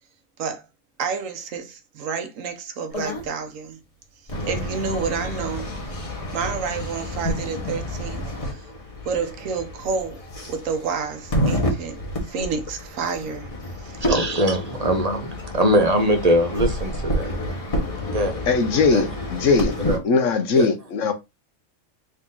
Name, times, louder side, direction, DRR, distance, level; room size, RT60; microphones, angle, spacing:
voice 1, 1.0-3.8 4.5-5.7 6.3-8.7 9.0-10.2 10.5-13.5 13.8-14.3, right 5 dB, 70° right, 1.1 m, -29 dB
sound 1, 2.9-3.3 4.3-20.0, equal, 25° left, 1.2 m, -29 dB
voice 2, 14.1-17.3 18.1-18.4 18.9-19.0 19.9-20.0 20.5-20.7, equal, 35° right, 0.7 m, -21 dB
voice 3, 18.5-19.7 20.0-21.1, left 4 dB, 65° left, 1.1 m, -20 dB
3.9 x 2.8 x 3.7 m
omnidirectional pair, 1.5 m